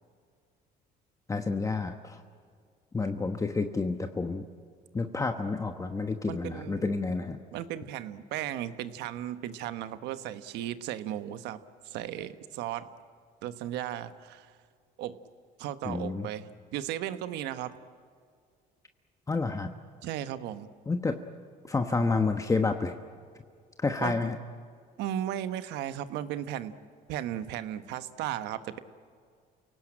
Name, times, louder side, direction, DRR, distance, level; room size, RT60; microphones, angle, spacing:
voice 1, 1.3-2.2 2.9-4.4 4.9-7.4 15.8-16.3 19.3-19.7 20.9-21.2 21.7-22.9 23.8-24.4, left 3 dB, 20° left, 6 dB, 1.2 m, -29 dB
voice 2, 6.3-6.9 7.5-11.6 11.8-12.9 13.4-14.5 15.0-15.2 15.6-16.5 16.7-17.7 20.0-20.7 24.0-24.2 25.0-26.7 27.1-28.8, right 11 dB, 90° right, 11 dB, 1.2 m, -35 dB
28.5 x 18.0 x 8.9 m, 2.1 s
cardioid pair, 110°, 17 cm